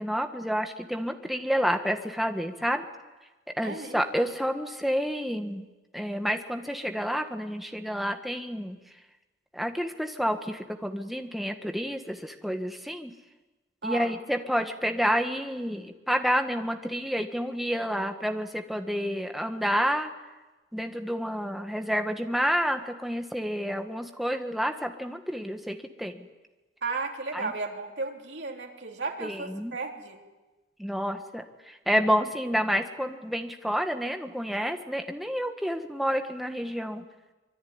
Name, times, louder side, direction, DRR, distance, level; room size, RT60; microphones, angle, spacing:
voice 1, 0.0-2.8 3.6-5.7 5.9-8.8 9.5-13.1 13.8-20.1 20.7-26.3 27.3-27.5 29.2-29.7 30.8-37.0, equal, ahead, 5 dB, 1.6 m, -29 dB
voice 2, 3.6-4.1 13.8-14.2 26.8-30.2, right 3 dB, 80° right, 1 dB, 3.5 m, -34 dB
25.0 x 23.5 x 9.6 m, 1.2 s
head